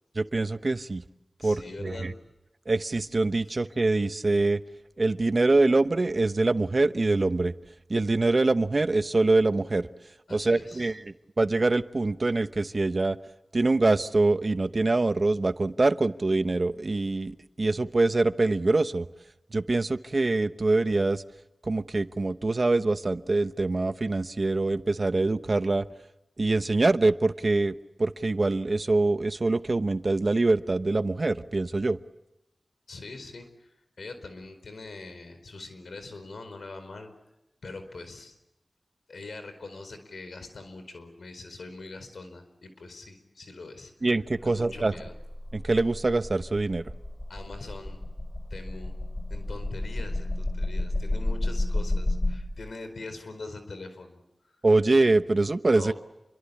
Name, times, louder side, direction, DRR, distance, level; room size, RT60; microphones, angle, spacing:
voice 1, 0.1-1.0 1.4-2.1 2.7-4.6 5.0-7.5 7.9-9.9 10.3-13.2 13.5-19.1 19.5-21.2 21.6-25.8 26.4-32.0 44.0-44.9 45.5-46.8 54.6-55.9, right 2 dB, 50° right, 12 dB, 1.0 m, -24 dB
voice 2, 1.4-2.2 10.3-10.9 32.9-37.1 37.6-38.3 39.1-43.9 44.4-45.1 47.3-48.0 48.5-48.9 49.3-54.2 55.7-55.9, left 3 dB, 85° left, 9 dB, 4.5 m, -42 dB
sound 1, 44.4-52.4, left 1 dB, 15° left, 4.8 m, -31 dB
29.0 x 23.5 x 8.6 m, 0.90 s
wide cardioid pair, 50°, 0 cm